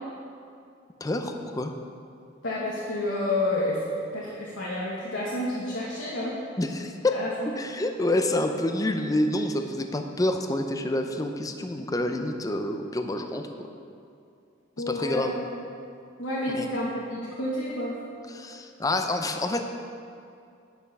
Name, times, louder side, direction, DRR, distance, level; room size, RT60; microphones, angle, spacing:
voice 1, 1.0-1.7 6.6-13.7 14.9-15.4 16.5-16.7 18.3-19.6, left 1 dB, 20° left, 6 dB, 0.5 m, -28 dB
voice 2, 2.4-3.8 4.1-6.3 7.1-7.3 14.8-15.3 16.2-17.9, left 1 dB, 80° left, -6 dB, 1.3 m, -29 dB
9.2 x 6.4 x 5.4 m, 2.4 s
head